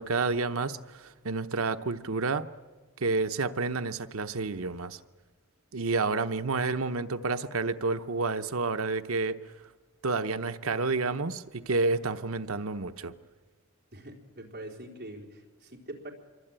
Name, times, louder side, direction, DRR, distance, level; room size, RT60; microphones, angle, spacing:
voice 1, 0.0-2.5 3.0-5.0 5.7-9.4 10.0-13.1, right 3 dB, 65° right, 0.9 m, -29 dB
voice 2, 13.9-16.1, right 1 dB, 45° right, 4.1 m, -44 dB
26.0 x 24.0 x 9.0 m
head